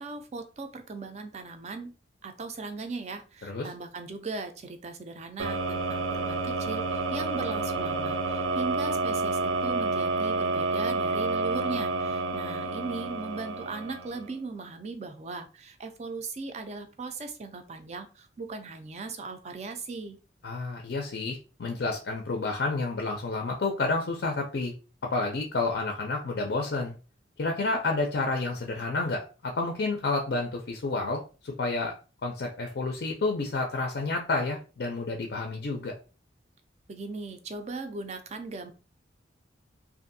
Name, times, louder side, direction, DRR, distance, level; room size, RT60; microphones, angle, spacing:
voice 1, 0.0-1.9 2.2-20.2 36.9-38.7, right 3 dB, 35° right, 7 dB, 0.4 m, -38 dB
sound 1, 5.4-14.3, right 3 dB, 90° right, 0.5 m, -29 dB
voice 2, 20.4-24.7 25.1-27.0 27.4-31.9 32.2-35.9, left 3 dB, 55° left, 2 dB, 0.4 m, -30 dB
2.6 x 2.4 x 2.5 m, 0.34 s
head